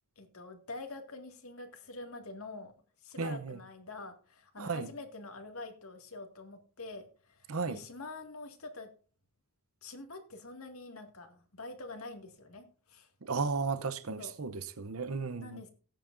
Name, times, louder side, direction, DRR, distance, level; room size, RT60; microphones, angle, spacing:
voice 1, 0.2-2.7 3.0-8.9 9.8-13.1 14.2-14.4 15.4-15.7, left 2 dB, 80° left, 2.1 m, -46 dB
voice 2, 3.2-3.6 4.6-4.9 7.5-7.8 13.2-15.6, right 4 dB, 80° right, 0.8 m, -34 dB
18.0 x 9.2 x 2.6 m
head